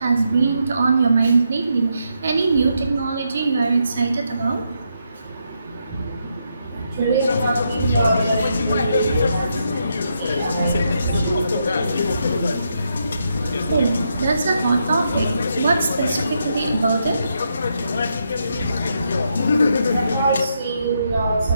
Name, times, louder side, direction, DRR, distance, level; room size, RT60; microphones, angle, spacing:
voice 1, 0.0-4.6 9.4-9.8 13.6-17.9 19.3-19.5 19.9-20.0, right 4 dB, 45° right, 2 dB, 2.1 m, -21 dB
voice 2, 7.0-8.4 8.6-9.0 9.3-9.4 10.4-10.8 11.3-11.6 19.9-21.4, right 2 dB, 20° right, -3 dB, 1.6 m, -21 dB
sound 1, 7.2-20.5, left 4 dB, 45° left, 0.8 m, -24 dB
12.0 x 5.0 x 6.7 m, 0.95 s
hypercardioid pair, 170°, 0 cm